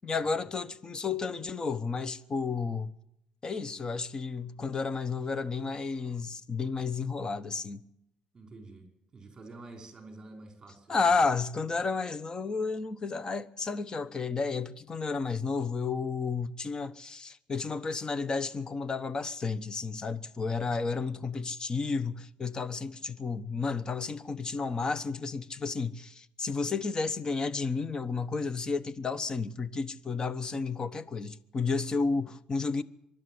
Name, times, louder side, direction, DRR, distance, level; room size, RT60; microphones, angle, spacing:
voice 1, 0.0-2.9 3.4-7.9 10.9-32.8, left 4 dB, 30° left, 1.0 m, -32 dB
voice 2, 8.3-11.2, right 2 dB, 25° right, 5.6 m, -49 dB
24.5 x 12.0 x 9.6 m
cardioid pair, 115°, 3 cm